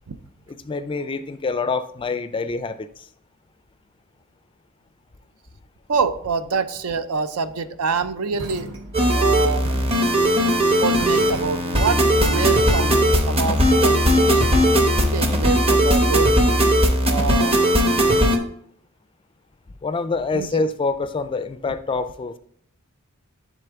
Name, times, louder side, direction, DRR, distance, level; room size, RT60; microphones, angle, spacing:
voice 1, 0.5-2.9 19.8-22.4, left 4 dB, 25° left, 11 dB, 0.3 m, -26 dB
voice 2, 5.9-8.7 9.1-9.7 10.8-13.9 14.3-14.5 15.1-16.3 17.1-17.6 20.3-20.6, right 5 dB, 80° right, 11 dB, 0.5 m, -26 dB
sound 1, 8.4-11.9, right 2 dB, 60° right, 0.9 m, -37 dB
sound 2, 8.9-18.4, equal, 25° right, 0.8 m, -18 dB
10.0 x 3.6 x 3.5 m, 0.66 s
head